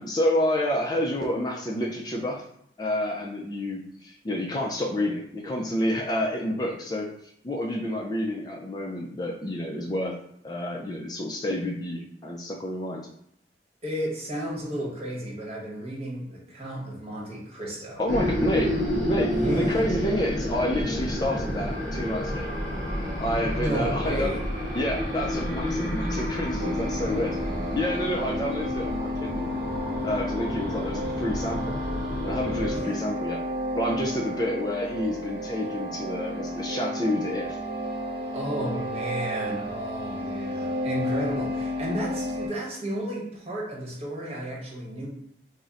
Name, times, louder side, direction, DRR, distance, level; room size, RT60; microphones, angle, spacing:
voice 1, 0.0-2.4 2.8-7.1 7.4-10.1 10.4-13.1 18.0-18.7 19.1-22.5 23.2-24.4 24.7-29.5 30.0-31.8 32.2-33.4 33.8-37.6, left 1 dB, 20° left, -1 dB, 0.4 m, -29 dB
voice 2, 13.8-18.0 19.3-19.9 23.5-24.4 32.7-33.1 38.3-45.1, right 1 dB, 35° right, -3 dB, 1.0 m, -33 dB
sound 1, 18.1-32.8, equal, 5° left, 1.5 m, -30 dB
sound 2, 26.6-42.5, left 1 dB, 60° right, 0.8 m, -32 dB
3.6 x 2.1 x 4.0 m, 0.72 s
head